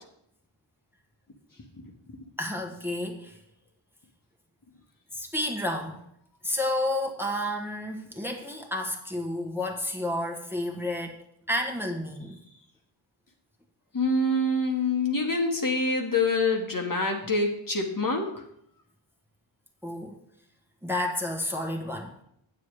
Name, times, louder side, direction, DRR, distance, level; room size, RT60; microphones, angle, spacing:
voice 1, 2.4-3.4 5.2-6.0 6.4-11.2 11.5-12.4 19.8-20.2 20.8-22.1, left 1 dB, 5° right, 1 dB, 1.4 m, -31 dB
voice 2, 13.9-18.3, left 2 dB, 40° left, 2 dB, 1.5 m, -26 dB
8.3 x 7.4 x 4.8 m, 0.72 s
cardioid pair, 65°, 50 cm